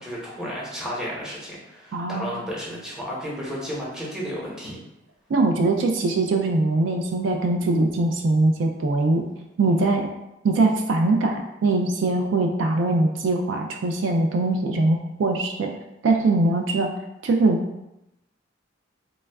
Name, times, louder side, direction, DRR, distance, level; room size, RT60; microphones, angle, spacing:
voice 1, 0.0-4.8, equal, 5° right, -5 dB, 0.9 m, -33 dB
voice 2, 1.9-2.4 5.3-9.2 9.6-10.1 10.4-15.7 16.0-16.9 17.2-17.6, right 2 dB, 70° right, 3 dB, 0.4 m, -22 dB
3.1 x 2.3 x 3.4 m, 0.90 s
head